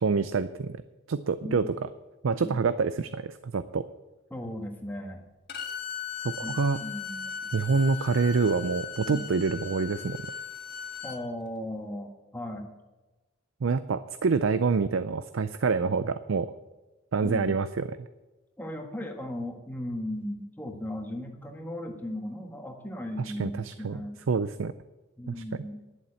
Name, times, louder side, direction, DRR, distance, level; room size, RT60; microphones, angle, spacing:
voice 1, 0.0-0.7 1.1-1.9 2.2-3.9 6.2-6.8 7.5-10.2 13.6-16.5 17.1-17.9 23.2-24.0 24.3-24.7 25.3-25.4, right 4 dB, 80° right, 13 dB, 0.5 m, -26 dB
voice 2, 1.4-1.8 2.4-2.5 4.3-5.2 6.4-7.5 9.1-9.2 11.0-12.7 17.2-17.5 18.6-24.2 25.2-25.8, left 1 dB, 10° left, 2 dB, 1.5 m, -37 dB
Bowed string instrument, 5.5-11.2, left 7 dB, 55° left, 1.6 m, -38 dB
11.0 x 7.3 x 8.4 m, 1.1 s
head